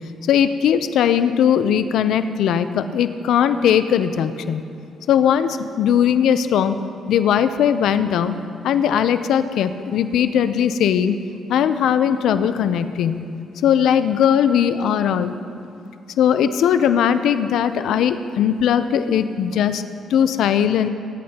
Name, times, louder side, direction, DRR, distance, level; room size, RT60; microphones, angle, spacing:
voice 1, 0.3-4.6 5.1-6.8 7.1-8.4 8.6-11.2 11.5-13.3 13.6-15.3 16.2-19.8 20.1-20.9, left 8 dB, 80° left, 11 dB, 0.5 m, -19 dB
19.0 x 10.5 x 2.9 m, 2.6 s
cardioid pair, 90°, 0 cm